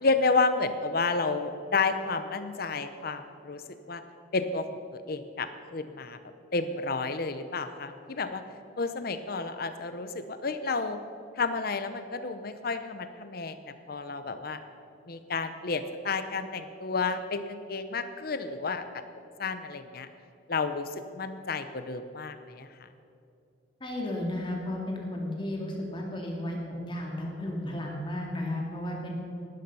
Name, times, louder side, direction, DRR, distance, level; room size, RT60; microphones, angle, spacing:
voice 1, 0.0-3.6 3.9-4.0 4.3-4.6 5.1-6.2 6.5-8.4 8.8-11.0 11.4-13.6 13.9-14.6 15.1-18.8 19.4-20.1 20.5-22.7, left 4 dB, 55° left, 10 dB, 0.8 m, -31 dB
voice 2, 23.8-29.1, left 1 dB, 25° left, -1 dB, 2.4 m, -33 dB
17.5 x 12.0 x 5.5 m, 2.6 s
head